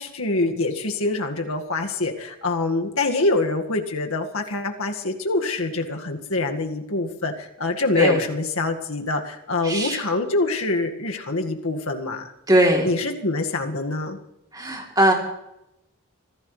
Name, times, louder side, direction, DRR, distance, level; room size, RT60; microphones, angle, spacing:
voice 1, 0.0-12.3 12.8-14.2, left 2 dB, 70° left, 3 dB, 1.9 m, -25 dB
voice 2, 9.6-10.0 12.5-12.9 14.5-15.1, right 1 dB, 20° right, 0 dB, 3.3 m, -19 dB
25.5 x 16.0 x 3.3 m, 0.87 s
head